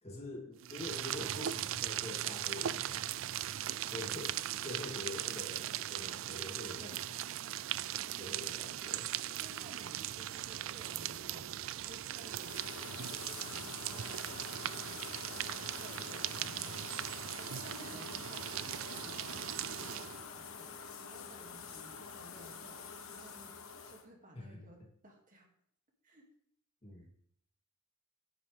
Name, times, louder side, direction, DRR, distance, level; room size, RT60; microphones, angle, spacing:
voice 1, 0.0-3.2 3.9-7.3 8.2-9.1 24.3-24.6 26.8-27.1, left 2 dB, 30° left, -1 dB, 2.8 m, -46 dB
sound 1, 0.6-20.2, right 12 dB, 65° right, 0.4 m, -39 dB
voice 2, 9.4-11.5 11.8-22.8 23.1-23.6 23.9-25.5 26.0-26.3 26.9-27.0, equal, 40° right, 0 dB, 2.3 m, -57 dB
radio signals space, 12.3-24.0, left 5 dB, 80° left, 1.3 m, -47 dB
12.0 x 10.0 x 3.4 m, 0.66 s
head